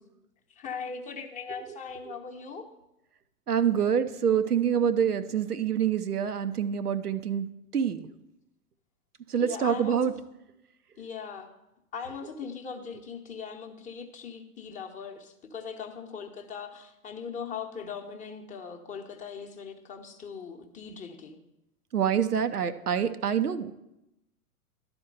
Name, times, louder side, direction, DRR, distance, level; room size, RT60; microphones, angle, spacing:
voice 1, 0.5-2.7 9.4-10.1 11.0-11.5 11.9-21.4, left 6 dB, 15° left, 3 dB, 0.8 m, -40 dB
voice 2, 3.5-7.5 7.7-8.1 9.3-10.1 21.9-23.7, right 8 dB, 85° right, 9 dB, 0.7 m, -26 dB
11.5 x 4.4 x 6.6 m, 0.88 s
figure-of-eight pair, 95°, 45 cm